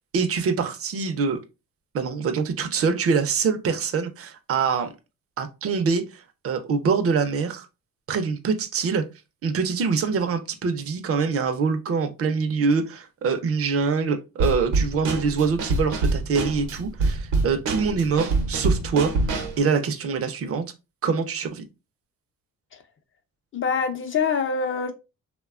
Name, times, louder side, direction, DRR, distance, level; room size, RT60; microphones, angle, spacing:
voice 1, 0.1-1.4 1.9-4.9 5.4-7.7 8.1-9.0 9.4-19.1 19.6-20.6 21.0-21.7, right 5 dB, 50° right, 0.5 m, -24 dB
Drum kit / Snare drum, 14.4-19.6, right 3 dB, 85° right, 0.8 m, -25 dB
voice 2, 23.5-24.9, left 5 dB, 40° left, 0.6 m, -25 dB
2.9 x 2.2 x 2.3 m
cardioid pair, 90°, 30 cm